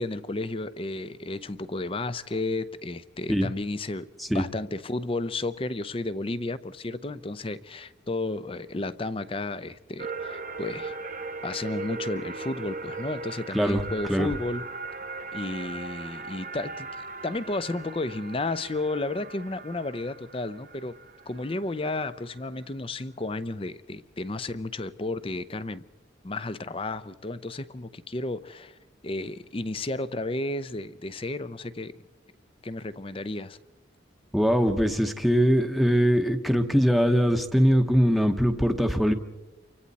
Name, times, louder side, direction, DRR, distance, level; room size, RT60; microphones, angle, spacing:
voice 1, 0.0-10.9 11.4-14.7 15.3-16.9 17.2-20.9 21.3-25.8 26.2-28.8 29.0-31.9 32.6-33.6, left 2 dB, 30° left, 0.6 m, -32 dB
sound 1, 10.0-22.6, right 3 dB, 45° right, 1.2 m, -38 dB
voice 2, 34.3-39.1, equal, ahead, 0.9 m, -22 dB
29.0 x 24.5 x 4.1 m
head